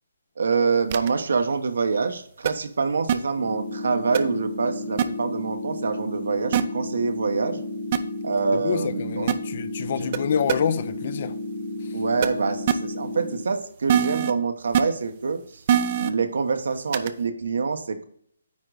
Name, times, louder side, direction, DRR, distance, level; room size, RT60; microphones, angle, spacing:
voice 1, 0.4-7.6 8.2-9.3 9.9-10.2 11.9-15.6 16.0-18.0, right 4 dB, 75° right, 1.1 m, -26 dB
sound 1, 0.9-1.1 2.5-2.6 3.1-3.2 4.1-4.2 5.0-5.1 6.5-6.6 7.9-8.0 9.3-9.4 10.1-10.2 10.5-10.6 12.2-12.3 12.7-12.8 13.9-14.3 14.7-14.8 15.7-16.1 16.9-17.1, right 9 dB, 40° right, 0.5 m, -21 dB
sound 2, 3.4-13.4, left 2 dB, 80° left, 3.3 m, -33 dB
voice 2, 8.6-11.3, left 7 dB, 45° left, 0.6 m, -27 dB
9.5 x 3.8 x 4.8 m
hypercardioid pair, 160°, 0 cm